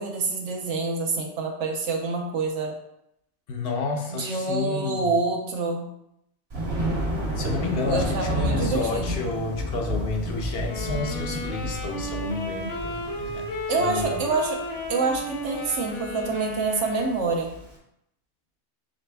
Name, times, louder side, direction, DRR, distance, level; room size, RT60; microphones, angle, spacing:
voice 1, 0.0-2.7 4.1-5.9 7.9-9.2 13.7-14.6 14.9-17.5, right 3 dB, 75° right, 1 dB, 1.1 m, -27 dB
voice 2, 3.5-5.1 7.4-13.5 13.7-14.2, left 3 dB, 60° left, 3 dB, 0.8 m, -30 dB
Thunder, 6.5-17.6, equal, 60° right, 1.3 m, -31 dB
sound 1, 10.6-17.4, left 1 dB, 85° left, 1.0 m, -34 dB
5.0 x 4.0 x 2.2 m, 0.79 s
omnidirectional pair, 1.2 m